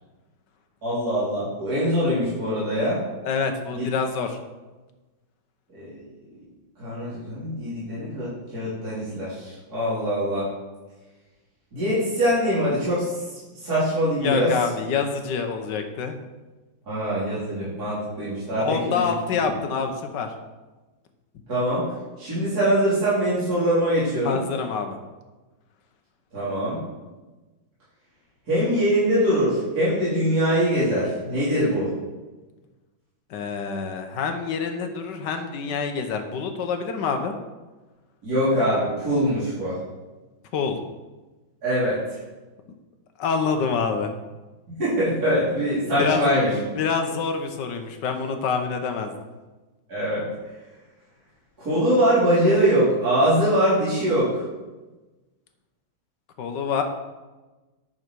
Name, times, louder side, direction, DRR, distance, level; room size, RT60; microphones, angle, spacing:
voice 1, 0.8-3.0 3.7-3.9 5.7-6.0 6.8-10.5 11.7-13.1 13.6-14.5 16.9-19.1 21.5-21.8 22.2-24.4 26.3-26.8 28.5-31.9 38.2-39.8 41.6-42.0 44.8-46.5 49.9-50.3 51.6-54.4, equal, 45° right, -12 dB, 3.9 m, -23 dB
voice 2, 3.2-4.4 14.2-16.1 18.6-20.3 24.2-25.0 33.3-37.3 40.5-40.8 43.2-44.1 45.9-46.3 46.5-49.2 56.4-56.8, left 5 dB, 65° left, 6 dB, 1.5 m, -26 dB
10.0 x 6.5 x 4.6 m, 1.2 s
omnidirectional pair, 2.2 m